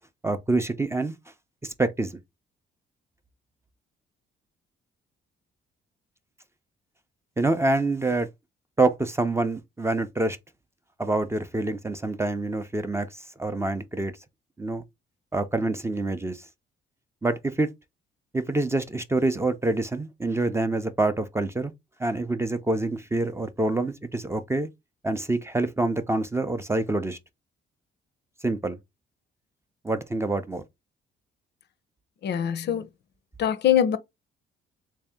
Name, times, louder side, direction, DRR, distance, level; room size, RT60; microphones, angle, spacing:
voice 1, 0.2-1.1 1.6-2.1 7.4-8.3 8.8-10.4 11.0-14.1 14.6-14.8 15.3-16.5 17.2-17.7 18.3-21.7 22.0-24.7 25.0-27.2 28.4-28.8 29.8-30.6, right 2 dB, 15° right, 0.4 m, -26 dB
voice 2, 32.2-32.9 33.4-34.0, left 9 dB, 60° left, 0.5 m, -23 dB
3.4 x 2.7 x 3.4 m
cardioid pair, 90°, 20 cm